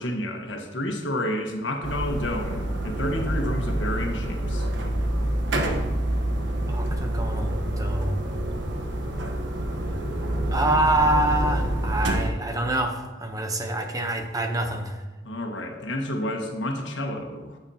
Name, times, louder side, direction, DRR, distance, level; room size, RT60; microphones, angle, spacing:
voice 1, 0.0-4.7 15.2-17.6, left 1 dB, 85° left, 2 dB, 1.4 m, -30 dB
sound 1, 1.8-12.3, right 1 dB, 80° right, 1.2 m, -27 dB
voice 2, 6.7-8.3 10.5-15.0, right 1 dB, 20° right, 5 dB, 0.8 m, -26 dB
15.0 x 7.0 x 2.9 m, 1.2 s
head